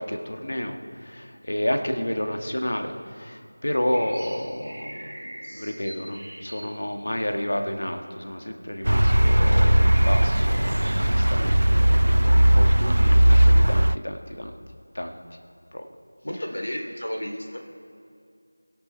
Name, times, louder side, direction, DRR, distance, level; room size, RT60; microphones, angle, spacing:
voice 1, 0.0-14.5 14.9-15.1 15.7-15.9, left 1 dB, 50° left, 5 dB, 1.4 m, -31 dB
sound 1, 3.9-7.8 8.4-8.5 8.8-11.3, right 1 dB, 35° right, 2.6 m, -42 dB
sound 2, 8.8-14.0, right 1 dB, 80° right, 0.3 m, -18 dB
voice 2, 16.2-17.6, equal, 65° left, 3 dB, 2.7 m, -32 dB
21.0 x 11.5 x 4.5 m, 2.4 s
figure-of-eight pair, 180°, 0 cm